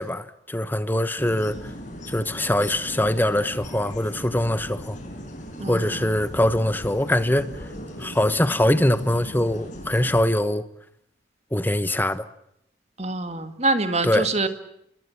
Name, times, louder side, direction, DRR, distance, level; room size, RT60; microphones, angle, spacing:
voice 1, 0.0-1.6 2.1-5.0 5.7-7.5 8.0-10.6 11.5-12.3 14.0-14.3, left 1 dB, 10° left, 1.2 m, -23 dB
sound 1, 1.2-10.2, equal, 40° left, 6.7 m, -38 dB
voice 2, 5.6-6.1 13.0-14.5, right 2 dB, 35° right, 2.1 m, -25 dB
27.0 x 22.5 x 7.3 m
head